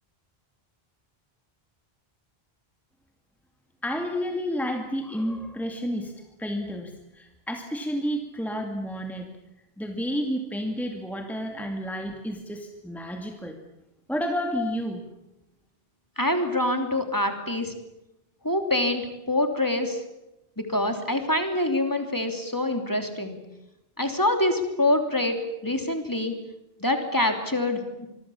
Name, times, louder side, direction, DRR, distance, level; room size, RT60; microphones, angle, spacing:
voice 1, 3.8-6.1 6.4-9.3 9.8-13.6 14.1-15.0, equal, ahead, 3 dB, 2.3 m, -30 dB
voice 2, 16.2-17.7 18.4-20.0 20.6-23.4 24.0-25.4 25.6-26.3 26.8-28.1, left 1 dB, 20° left, 5 dB, 3.1 m, -25 dB
25.5 x 23.0 x 7.2 m, 0.92 s
omnidirectional pair, 1.0 m